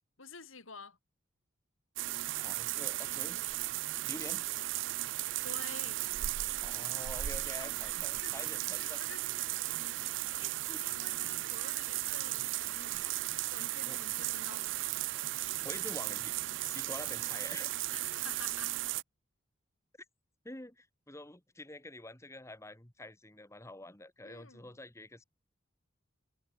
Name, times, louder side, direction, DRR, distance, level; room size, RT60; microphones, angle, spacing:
voice 1, 0.2-1.0 5.4-6.0 7.8-7.9 8.2-10.0 10.3-13.1 13.5-14.8 17.9-18.7 24.2-24.8, left 4 dB, 80° left, 4.5 m, -50 dB
sound 1, 2.0-19.0, right 16 dB, 65° right, 0.4 m, -36 dB
voice 2, 2.3-3.4 4.0-4.4 6.6-9.0 9.7-9.8 10.7-10.8 13.8-14.0 15.3-16.3 16.6-17.7 20.4-25.2, left 1 dB, 15° left, 1.7 m, -47 dB
head